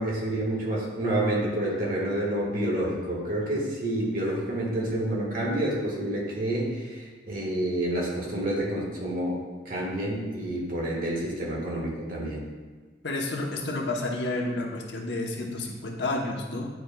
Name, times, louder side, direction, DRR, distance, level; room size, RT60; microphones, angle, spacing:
voice 1, 0.0-9.4 9.6-12.4, right 1 dB, 50° right, -3 dB, 1.5 m, -28 dB
voice 2, 13.0-16.7, left 2 dB, 70° left, 0 dB, 0.9 m, -30 dB
9.6 x 4.5 x 2.3 m, 1.5 s
head